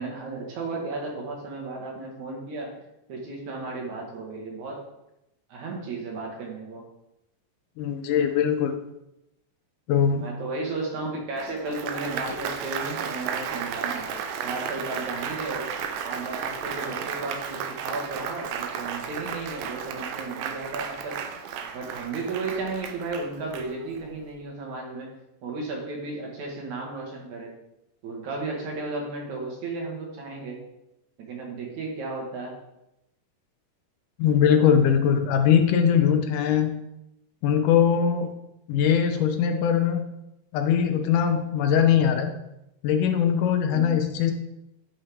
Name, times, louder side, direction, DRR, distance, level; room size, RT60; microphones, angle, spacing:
voice 1, 0.0-2.7 3.1-4.8 5.5-6.8 10.1-15.7 16.0-21.2 21.7-25.1 25.4-27.5 28.0-30.6 31.2-32.6 43.7-44.0, right 3 dB, 65° right, -1 dB, 2.9 m, -34 dB
voice 2, 7.8-8.8 9.9-10.3 34.2-36.7 37.4-38.3 38.7-40.0 40.5-42.3 42.8-44.3, left 8 dB, 80° left, 7 dB, 2.2 m, -21 dB
Applause, 11.4-24.1, right 7 dB, 85° right, 2.4 m, -34 dB
11.0 x 5.4 x 3.5 m, 0.86 s
omnidirectional pair, 3.8 m